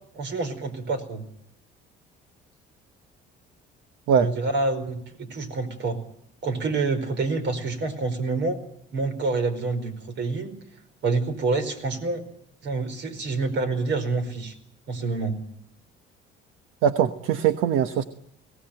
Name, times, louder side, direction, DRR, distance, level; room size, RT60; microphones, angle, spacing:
voice 1, 0.1-1.3 4.1-6.0 6.4-8.6 8.9-10.5 11.0-12.2 12.6-14.5 14.9-15.4, right 3 dB, 60° right, 9 dB, 4.8 m, -27 dB
voice 2, 16.8-18.0, right 8 dB, 80° right, 10 dB, 1.2 m, -21 dB
22.0 x 18.0 x 9.1 m, 0.72 s
cardioid pair, 100°, 21 cm